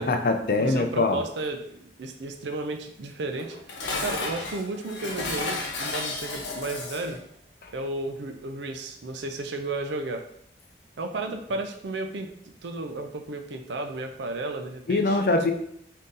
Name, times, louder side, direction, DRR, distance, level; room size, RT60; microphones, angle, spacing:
voice 1, 0.0-1.2 7.6-7.7 14.9-15.5, left 2 dB, 55° left, 5 dB, 0.4 m, -23 dB
voice 2, 0.6-3.6 4.0-7.2 7.7-10.3 11.0-12.3 12.6-15.2, right 2 dB, 80° right, 5 dB, 0.5 m, -33 dB
Dishes pots and pans, 3.4-7.2, left 3 dB, 85° left, 0.8 m, -33 dB
3.7 x 2.7 x 3.9 m, 0.70 s
head